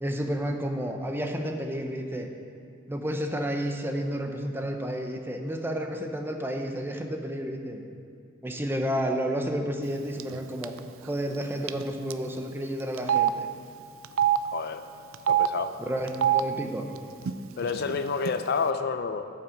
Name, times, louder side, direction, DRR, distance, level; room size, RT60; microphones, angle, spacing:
voice 1, 0.0-2.3 2.9-7.8 8.4-10.7 11.0-13.5 15.8-16.9, equal, 10° right, 3 dB, 0.7 m, -31 dB
Telephone, 10.2-10.4 10.6-10.8 11.7-11.8 12.1-12.2 13.0-13.3 14.0-14.4 15.1-15.5 16.1-16.4 17.2-17.3 17.6-18.3, right 11 dB, 85° right, 0.4 m, -23 dB
voice 2, 14.5-14.8 15.3-15.7 17.6-19.3, left 5 dB, 55° left, 9 dB, 0.4 m, -29 dB
9.0 x 5.7 x 7.4 m, 2.3 s
head